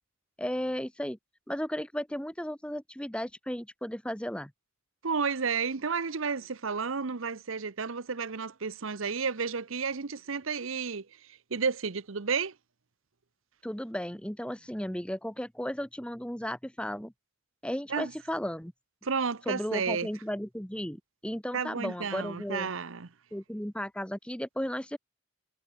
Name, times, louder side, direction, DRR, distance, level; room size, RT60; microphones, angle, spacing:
voice 1, 0.4-1.2 1.5-4.5 13.6-17.1 17.6-18.7 19.5-22.7 23.3-25.0, equal, 5° left, 1.4 m, -35 dB
voice 2, 5.0-11.1 11.5-12.5 17.9-18.1 19.0-20.1 21.5-23.1, right 5 dB, 80° right, 0.9 m, -31 dB
head